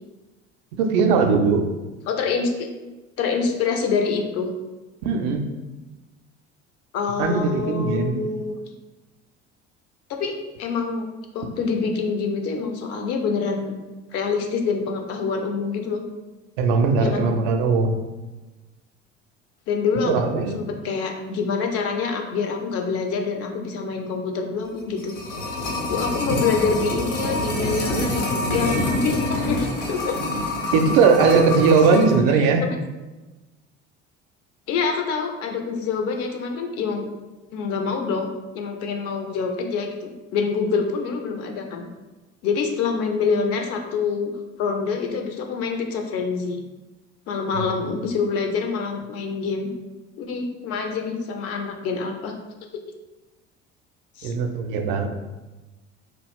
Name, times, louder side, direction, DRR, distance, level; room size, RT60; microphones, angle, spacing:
voice 1, 0.8-1.6 5.0-5.4 7.2-8.2 16.6-18.0 20.0-20.6 26.3-26.4 30.7-32.6 47.5-47.6 54.2-55.1, right 5 dB, 50° right, 4 dB, 0.4 m, -19 dB
voice 2, 2.1-2.7 3.2-4.5 6.9-8.6 10.1-10.3 10.6-11.1 11.3-13.7 14.1-16.0 17.0-17.3 19.7-20.2 20.5-25.1 25.9-30.2 32.3-32.8 34.7-37.1 37.5-41.9 42.4-44.3 44.6-46.6 47.3-49.7 50.2-52.3 54.2-54.3, left 5 dB, 40° left, 4 dB, 0.5 m, -26 dB
sound 1, 24.8-32.2 32.5-32.6, left 1 dB, 70° left, 0.8 m, -26 dB
3.0 x 2.3 x 3.4 m, 1.1 s
figure-of-eight pair, 60°, 37 cm